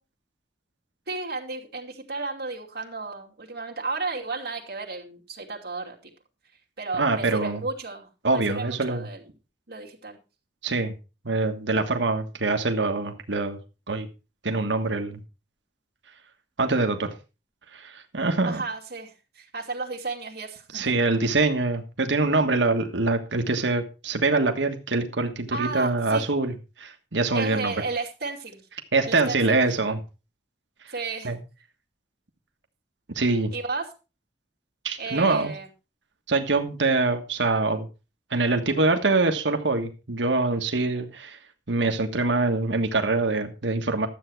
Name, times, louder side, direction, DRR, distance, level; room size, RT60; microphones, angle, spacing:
voice 1, 1.1-6.0 6.8-9.2 9.7-10.2 18.4-20.9 25.5-26.3 27.3-28.6 29.0-29.6 30.9-31.3 33.5-33.9 35.0-35.7 40.9-41.1, right 3 dB, 65° right, -1 dB, 2.7 m, -33 dB
voice 2, 6.9-7.6 8.2-9.1 10.6-10.9 11.2-13.6 13.9-14.1 14.4-15.2 16.6-17.1 17.7-18.6 20.7-26.5 26.8-27.7 28.9-30.0 30.8-30.9 31.2-31.4 33.1-33.5 34.8-35.5 36.3-37.9 38.3-41.4 41.7-44.1, right 3 dB, 85° right, 5 dB, 1.5 m, -24 dB
12.5 x 8.0 x 4.6 m, 0.31 s
head